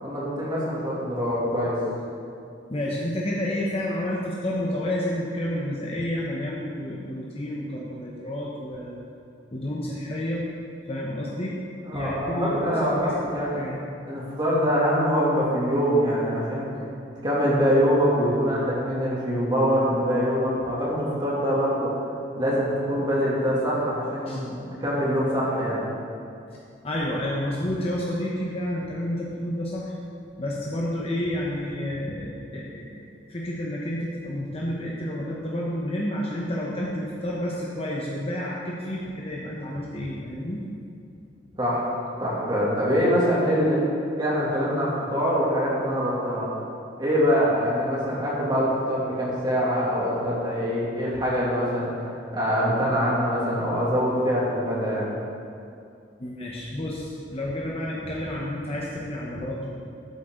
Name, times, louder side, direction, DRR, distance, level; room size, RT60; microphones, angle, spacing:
voice 1, 0.0-1.8 11.8-13.6 14.1-16.7 17.2-21.9 22.3-25.8 41.6-41.8 42.2-43.8 44.2-46.5 47.0-55.2, equal, 25° right, -7 dB, 2.7 m, -24 dB
voice 2, 2.7-9.0 9.5-10.5 10.9-11.6 11.9-13.8 24.3-24.4 26.8-29.9 30.4-40.6 56.2-59.7, left 1 dB, 35° left, -4 dB, 1.1 m, -30 dB
12.5 x 8.4 x 3.9 m, 2.5 s
head